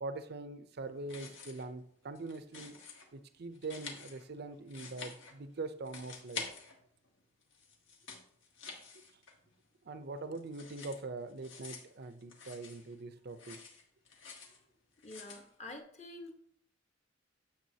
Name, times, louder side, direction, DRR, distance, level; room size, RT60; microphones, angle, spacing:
voice 1, 0.0-2.8 3.1-6.4 9.8-13.6, right 3 dB, 55° right, 10 dB, 0.6 m, -43 dB
sound 1, 0.9-1.8 2.0-3.1 3.5-5.6 5.8-7.1 7.4-9.6 9.9-13.0 13.3-14.6 15.0-15.4, left 5 dB, 75° left, 1.5 m, -48 dB
voice 2, 15.0-16.3, left 2 dB, 35° left, 4 dB, 1.2 m, -48 dB
9.3 x 7.0 x 2.8 m, 0.65 s
head